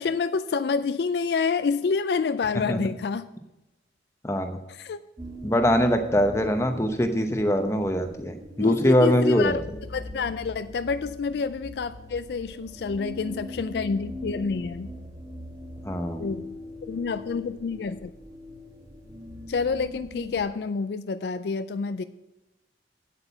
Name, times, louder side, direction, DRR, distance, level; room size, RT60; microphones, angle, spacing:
voice 1, 0.0-3.3 4.7-5.0 8.6-9.6 9.9-14.9 16.2-16.5 16.9-18.1 19.5-22.0, left 5 dB, 65° left, 12 dB, 0.4 m, -28 dB
voice 2, 4.2-4.6 5.4-9.6 15.8-16.3, equal, 15° left, 6 dB, 0.8 m, -23 dB
sound 1, 5.2-20.4, left 1 dB, 20° right, 1.9 m, -41 dB
8.9 x 8.3 x 5.7 m, 0.98 s
head